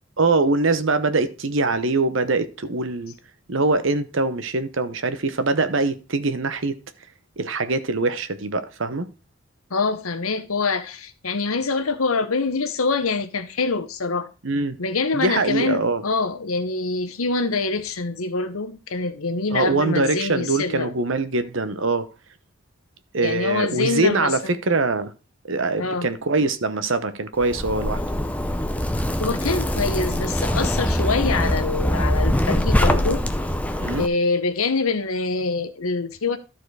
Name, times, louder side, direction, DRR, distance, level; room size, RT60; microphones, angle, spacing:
voice 1, 0.2-3.1 3.5-6.8 7.4-9.1 14.4-14.8 15.1-16.0 19.5-22.1 23.1-25.1 25.5-28.0 33.8-34.1, right 3 dB, 65° right, 0.9 m, -23 dB
voice 2, 9.7-14.3 14.8-20.9 23.2-24.3 25.8-26.1 29.2-33.2 34.0-36.4, left 3 dB, 85° left, 1.0 m, -25 dB
Zipper (clothing), 27.4-34.1, left 1 dB, 5° left, 0.5 m, -23 dB
12.5 x 4.6 x 4.7 m
head